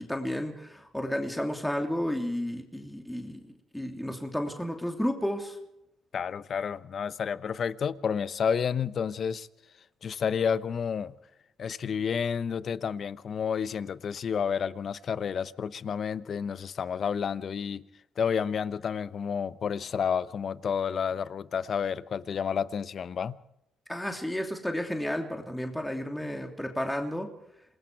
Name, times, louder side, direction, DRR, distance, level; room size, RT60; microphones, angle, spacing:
voice 1, 0.0-3.4 3.7-5.6 23.9-27.3, equal, 5° left, 2.9 m, -32 dB
voice 2, 6.1-9.5 10.0-11.2 11.6-17.9 18.2-23.4, left 7 dB, 55° left, 0.8 m, -30 dB
27.5 x 20.0 x 4.7 m
cardioid pair, 90°, 0 cm